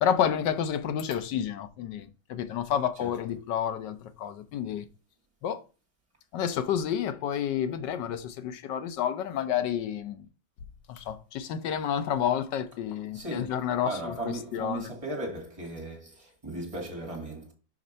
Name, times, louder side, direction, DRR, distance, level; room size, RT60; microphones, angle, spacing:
voice 1, 0.0-4.9 5.4-5.6 6.3-10.3 10.9-14.9, left 9 dB, 80° left, 1.4 m, -30 dB
voice 2, 13.1-13.6 13.8-17.5, right 2 dB, 20° right, 2.4 m, -37 dB
5.3 x 5.2 x 5.5 m
omnidirectional pair, 1.9 m